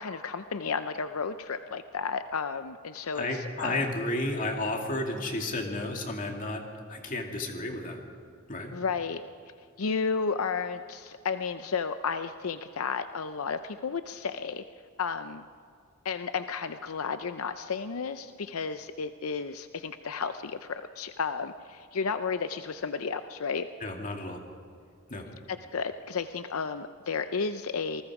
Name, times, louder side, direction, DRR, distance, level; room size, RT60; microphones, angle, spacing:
voice 1, 0.0-3.3 3.6-3.9 8.7-9.2 9.8-14.6 15.0-15.4 16.0-23.7 25.5-28.0, left 5 dB, 85° left, 10 dB, 0.6 m, -32 dB
voice 2, 3.1-6.6 6.9-8.0 8.5-8.7 23.8-24.4 25.1-25.3, left 2 dB, 40° left, 2 dB, 2.4 m, -32 dB
27.5 x 20.0 x 4.9 m, 2.3 s
head